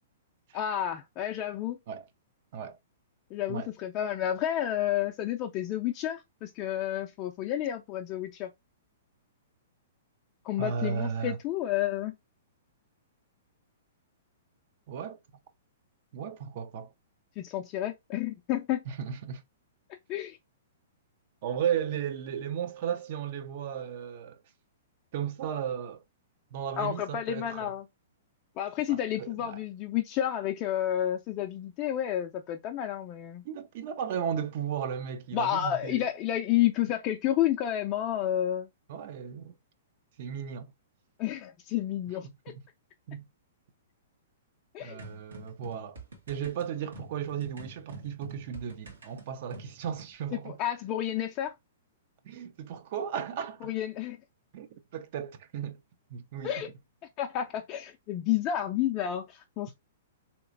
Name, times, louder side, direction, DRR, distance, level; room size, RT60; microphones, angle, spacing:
voice 1, 0.5-1.8 3.3-8.5 10.4-12.1 17.4-18.8 20.1-20.4 26.8-27.9 28.6-33.4 35.3-38.7 41.2-42.3 44.7-45.0 50.3-51.5 53.6-54.2 56.4-56.7 57.2-59.7, left 11 dB, 35° left, 0.4 m, -30 dB
voice 2, 10.6-11.4 14.9-15.2 16.1-16.9 18.9-19.4 21.4-24.4 25.1-26.0 26.5-27.7 28.9-29.6 33.4-36.1 38.9-39.5 40.2-40.7 42.2-42.6 43.1-43.3 44.8-46.0 46.3-50.6 52.2-53.7 54.5-55.8 56.1-56.7, right 8 dB, 55° right, 0.5 m, -35 dB
sound 1, 45.0-50.1, right 1 dB, 85° right, 1.2 m, -48 dB
3.1 x 2.9 x 2.5 m
hypercardioid pair, 125°, 0 cm